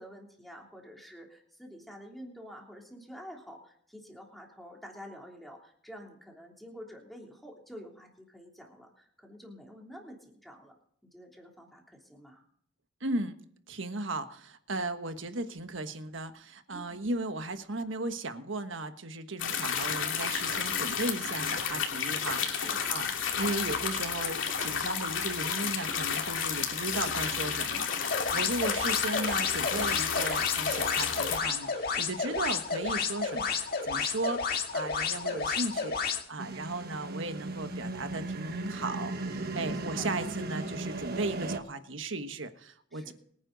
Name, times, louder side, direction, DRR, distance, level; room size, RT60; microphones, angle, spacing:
voice 1, 0.0-10.7 11.1-12.4 16.7-17.1 22.5-23.0 35.1-35.6 39.6-40.1 42.9-43.1, equal, ahead, 0 dB, 3.1 m, -49 dB
voice 2, 13.0-13.4 13.7-43.1, right 2 dB, 75° right, 9 dB, 1.3 m, -36 dB
sound 1, 19.4-31.4, left 7 dB, 75° left, 2.8 m, -31 dB
sound 2, 28.0-36.2, left 5 dB, 50° left, 2.0 m, -31 dB
sound 3, 36.4-41.6, right 2 dB, 50° right, 1.3 m, -36 dB
23.5 x 9.9 x 4.0 m, 0.66 s
head